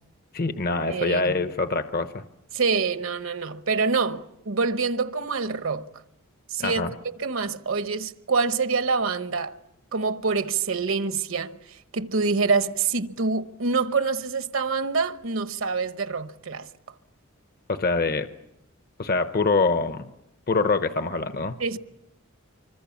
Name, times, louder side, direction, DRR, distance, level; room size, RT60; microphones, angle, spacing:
voice 1, 0.3-2.2 6.6-6.9 17.7-18.3 19.0-20.1 20.5-21.6, left 3 dB, 45° left, 0.8 m, -24 dB
voice 2, 0.9-1.3 2.5-5.9 6.5-6.9 7.2-9.5 9.9-16.7 21.6-21.8, right 4 dB, 65° right, 1.1 m, -26 dB
25.5 x 24.5 x 7.2 m
head